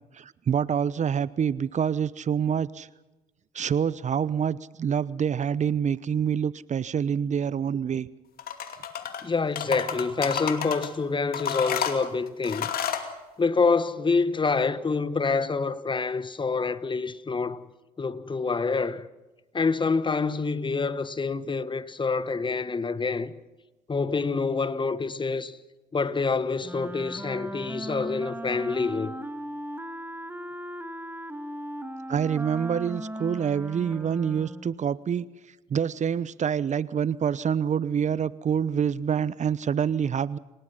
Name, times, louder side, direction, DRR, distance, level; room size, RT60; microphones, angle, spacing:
voice 1, 0.1-2.9 3.5-8.1 32.1-35.3 35.7-40.4, right 7 dB, 40° right, 0.9 m, -26 dB
sound 1, 8.4-9.2 9.6-10.9 11.3-13.1, left 8 dB, 60° left, 2.6 m, -30 dB
voice 2, 9.2-12.7 13.4-17.6 18.0-19.1 19.5-23.3 23.9-25.6 25.9-29.1, left 4 dB, 25° left, 1.4 m, -27 dB
Wind instrument woodwind instrument, 26.6-34.8, right 1 dB, 10° right, 2.1 m, -38 dB
28.0 x 18.5 x 5.7 m
hypercardioid pair, 50°, 18 cm